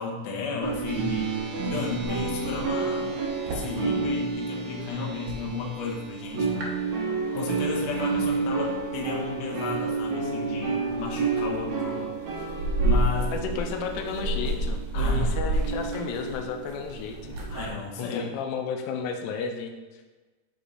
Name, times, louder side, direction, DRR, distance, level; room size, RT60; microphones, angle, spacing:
voice 1, 0.0-3.1 3.5-6.8 7.3-12.1 12.8-13.3 14.9-15.6 17.5-18.3, left 4 dB, 65° left, -1 dB, 1.8 m, -33 dB
sound 1, 0.6-6.0 6.2-17.7, right 3 dB, 65° right, 1.8 m, -29 dB
sound 2, 0.9-19.4, right 9 dB, 90° right, 3.4 m, -44 dB
voice 2, 13.3-17.4 18.0-19.7, left 5 dB, 85° left, 4 dB, 2.7 m, -33 dB
10.5 x 4.3 x 4.1 m, 1.3 s
omnidirectional pair, 4.9 m